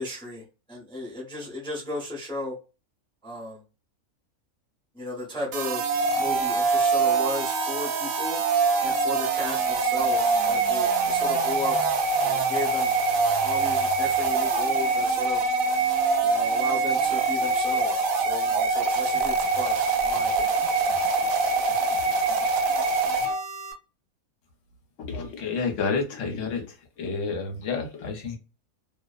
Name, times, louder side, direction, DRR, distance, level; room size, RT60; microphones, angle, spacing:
voice 1, 0.0-2.6 3.2-3.6 4.9-8.4 8.8-11.8 12.2-12.9 13.4-15.4 16.2-20.6, left 1 dB, 5° left, 0.7 m, -35 dB
sound 1, 5.5-23.7, right 4 dB, 75° right, 1.0 m, -24 dB
voice 2, 25.1-26.7 27.0-28.4, left 4 dB, 65° left, 1.1 m, -29 dB
2.6 x 2.1 x 2.3 m
omnidirectional pair, 1.5 m